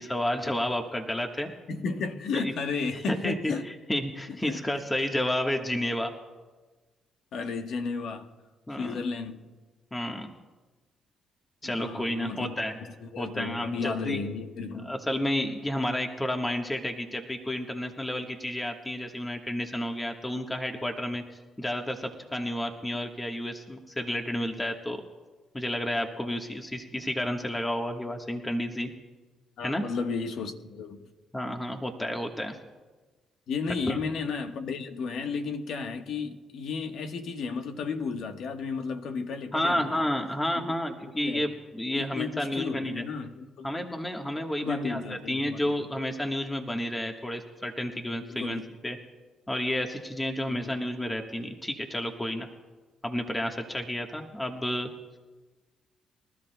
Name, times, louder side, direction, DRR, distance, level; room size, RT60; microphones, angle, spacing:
voice 1, 0.0-1.5 2.3-2.5 3.1-6.1 8.7-9.0 9.9-10.3 11.6-12.8 13.2-14.2 14.8-21.2 21.6-25.0 25.5-28.9 29.6-29.8 31.3-32.6 33.9-34.0 39.5-43.0 43.6-49.0 49.5-52.5 53.0-54.9, left 1 dB, 15° left, 1.3 m, -31 dB
voice 2, 1.7-3.7 4.3-4.6 7.3-8.3 8.8-9.4 11.6-12.6 13.0-14.9 29.6-31.1 33.5-40.1 40.6-40.7 41.2-41.4 41.9-43.7 44.6-45.8 48.3-48.6 50.5-50.7, left 4 dB, 70° left, 1.2 m, -33 dB
24.5 x 13.0 x 2.3 m
supercardioid pair, 60°, 0 cm